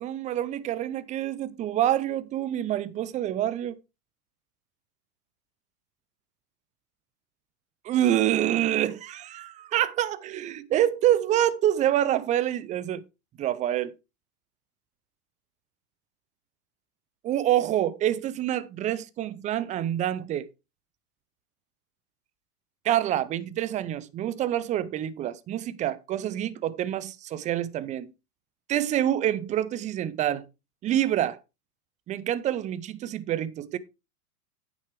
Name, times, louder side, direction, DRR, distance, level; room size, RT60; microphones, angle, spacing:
voice 1, 0.0-3.8 7.8-13.0 13.4-13.9 17.2-20.5 22.8-28.1 28.7-30.5 30.8-31.4 32.1-33.8, right 12 dB, 15° right, 0.5 m, -27 dB
9.4 x 9.0 x 3.4 m
hypercardioid pair, 115°, 46 cm